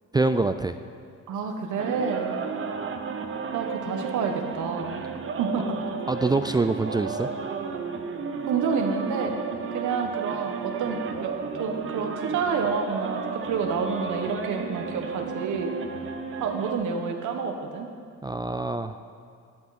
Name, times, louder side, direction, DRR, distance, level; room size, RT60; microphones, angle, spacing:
voice 1, 0.1-0.8 6.1-7.3 18.2-18.9, right 3 dB, 15° right, 9 dB, 0.3 m, -25 dB
voice 2, 1.3-2.4 3.5-5.0 5.4-5.8 8.5-9.4 9.7-15.8 16.3-17.9, right 5 dB, 75° right, 4 dB, 1.3 m, -29 dB
sound 1, 1.8-16.7, right 5 dB, 45° right, 1.0 m, -33 dB
12.0 x 11.0 x 4.2 m, 2.4 s
cardioid pair, 90°, 30 cm